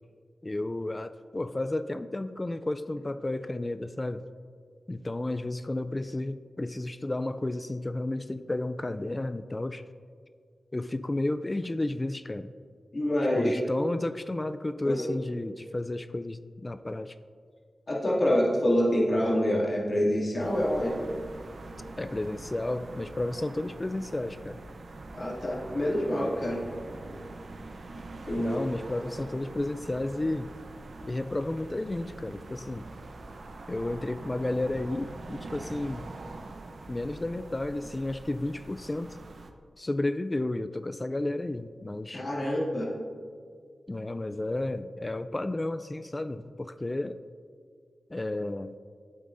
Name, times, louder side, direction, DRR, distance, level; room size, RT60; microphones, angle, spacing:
voice 1, 0.4-4.3 4.9-9.9 10.7-12.5 13.4-17.2 22.0-24.6 28.4-30.5 31.0-32.9 33.7-36.1 36.9-39.2 39.8-42.2 43.9-47.2 48.1-48.8, left 2 dB, 25° left, 12 dB, 0.3 m, -32 dB
voice 2, 12.9-13.6 14.8-15.1 17.9-21.0 25.1-26.6 28.3-28.6 42.1-42.9, equal, 50° left, -4 dB, 2.3 m, -26 dB
sound 1, 20.4-39.5, right 2 dB, 65° right, 0.6 m, -44 dB
11.5 x 7.8 x 2.6 m, 2.1 s
cardioid pair, 50°, 0 cm